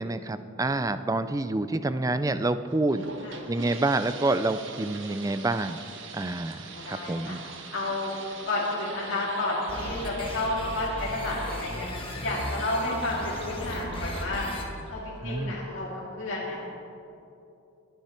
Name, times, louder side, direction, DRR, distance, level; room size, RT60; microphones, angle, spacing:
voice 1, 0.0-3.1 3.5-5.8 6.1-7.4 15.2-15.6, right 2 dB, 15° right, 12 dB, 0.4 m, -28 dB
sound 1, 2.7-15.2, right 4 dB, 60° right, 1.3 m, -44 dB
voice 2, 6.7-7.3 7.7-8.2 8.5-11.9 12.2-14.5 14.9-15.9 16.2-16.6, left 2 dB, 60° left, -7 dB, 2.2 m, -31 dB
sound 2, 9.7-14.6, left 1 dB, 25° left, 1.6 m, -36 dB
21.5 x 9.1 x 4.4 m, 2.8 s
head